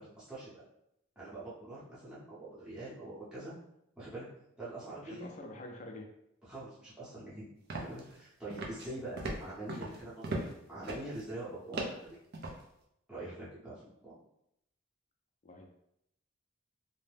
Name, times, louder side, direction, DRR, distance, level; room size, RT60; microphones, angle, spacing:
voice 1, 0.2-0.6 1.2-3.5 4.0-4.2 4.6-5.2 6.4-7.5 7.7-12.2 13.1-14.1, right 2 dB, 5° right, -12 dB, 0.8 m, -44 dB
voice 2, 5.0-6.1 15.4-15.6, left 1 dB, 35° left, 2 dB, 0.4 m, -46 dB
sound 1, 7.7-8.2 8.5-8.9 9.2-10.5 10.8-11.2 11.7-12.6, right 2 dB, 50° right, 0.5 m, -38 dB
2.7 x 2.1 x 3.3 m, 0.79 s
head